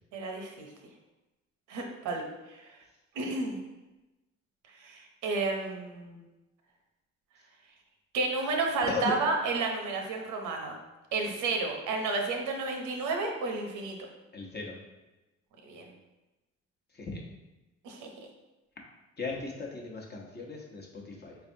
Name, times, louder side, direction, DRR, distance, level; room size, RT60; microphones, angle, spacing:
voice 1, 0.1-0.7 1.7-2.6 3.2-3.6 4.8-6.3 8.1-10.8 11.1-14.0 15.6-15.9 17.8-18.1, right 3 dB, 85° right, 2 dB, 0.8 m, -31 dB
voice 2, 14.3-14.8 16.9-17.2 19.2-21.4, left 4 dB, 35° left, -1 dB, 0.9 m, -37 dB
4.4 x 3.3 x 2.7 m, 1.1 s
cardioid pair, 90°, 30 cm